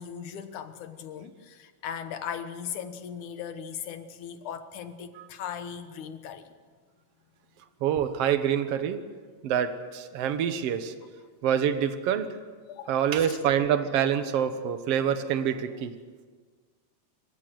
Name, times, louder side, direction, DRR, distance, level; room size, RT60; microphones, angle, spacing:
voice 1, 0.0-6.5 12.7-13.3, left 8 dB, 90° left, 9 dB, 2.7 m, -38 dB
voice 2, 7.8-9.1 9.4-10.9 11.4-12.4 12.9-15.9, right 9 dB, 60° right, 10 dB, 2.0 m, -26 dB
26.0 x 15.5 x 7.8 m, 1.5 s
omnidirectional pair, 3.4 m